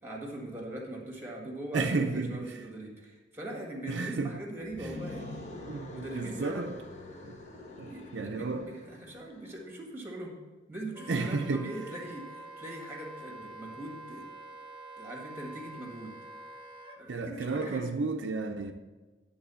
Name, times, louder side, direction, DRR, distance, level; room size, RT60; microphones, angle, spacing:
voice 1, 0.0-5.5 5.9-6.7 7.9-10.4 10.7-14.3 15.0-16.2 17.0-17.9, right 1 dB, 15° right, 1.8 m, -41 dB
voice 2, 1.7-2.4 3.9-4.3 4.8-4.9 5.7-6.8 7.2-7.4 7.8-8.6 11.1-11.6 17.1-18.7, right 3 dB, 75° right, 0.6 m, -32 dB
sound 1, 4.6-9.6, left 1 dB, 40° left, 1.2 m, -45 dB
Wind instrument woodwind instrument, 10.9-17.0, right 1 dB, 30° right, 0.9 m, -47 dB
10.5 x 3.9 x 6.9 m
head